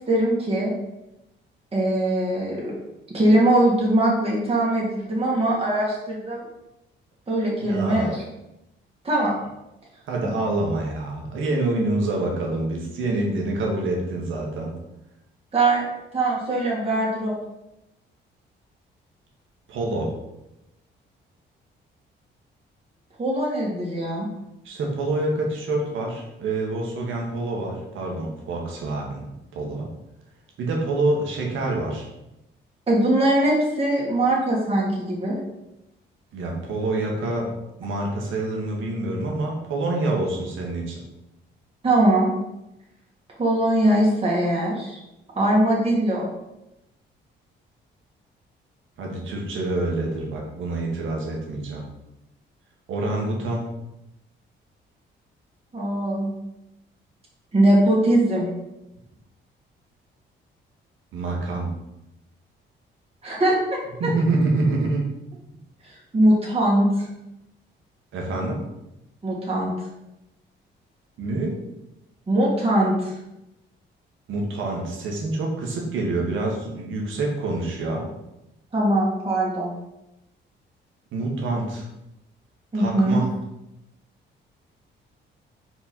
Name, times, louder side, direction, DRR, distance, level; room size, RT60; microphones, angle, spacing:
voice 1, 0.1-0.7 1.7-2.7 3.1-6.4 7.3-8.1 9.0-9.3 15.5-15.8 16.1-17.3 23.2-24.3 32.9-35.4 41.8-42.3 43.4-45.0 45.4-46.3 55.7-56.3 57.5-58.5 63.2-63.5 64.0-64.1 66.1-67.1 69.2-69.7 72.3-73.1 78.7-79.7 82.7-83.2, right 1 dB, 30° right, -4 dB, 2.2 m, -21 dB
voice 2, 7.6-8.2 10.1-14.7 19.7-20.1 24.6-29.9 30.6-32.1 36.3-37.5 37.8-41.0 49.0-51.9 52.9-53.7 61.1-61.7 64.0-65.1 68.1-68.6 71.2-71.5 74.3-78.1 81.1-81.9 82.7-83.3, right 2 dB, 80° right, -1 dB, 1.7 m, -26 dB
4.9 x 4.8 x 4.4 m, 0.91 s
cardioid pair, 90°, 20 cm